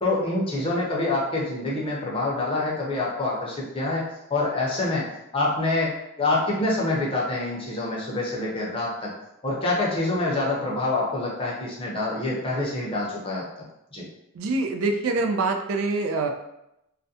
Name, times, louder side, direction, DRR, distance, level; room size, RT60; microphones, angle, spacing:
voice 1, 0.0-4.0 4.3-5.1 5.3-9.1 9.4-13.4 13.9-14.0, left 2 dB, 25° left, -4 dB, 0.6 m, -26 dB
voice 2, 14.4-16.3, right 3 dB, 70° right, 5 dB, 0.3 m, -25 dB
2.4 x 2.1 x 2.6 m, 0.85 s
head